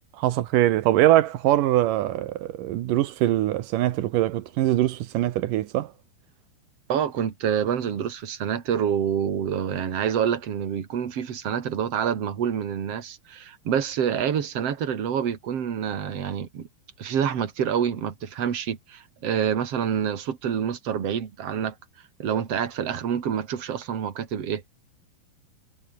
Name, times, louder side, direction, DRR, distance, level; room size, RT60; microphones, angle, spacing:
voice 1, 0.2-5.9, right 14 dB, 85° right, 1.9 m, -22 dB
voice 2, 6.9-16.7 17.0-21.8 22.2-24.6, right 8 dB, 40° right, 2.5 m, -27 dB
omnidirectional pair, 5.3 m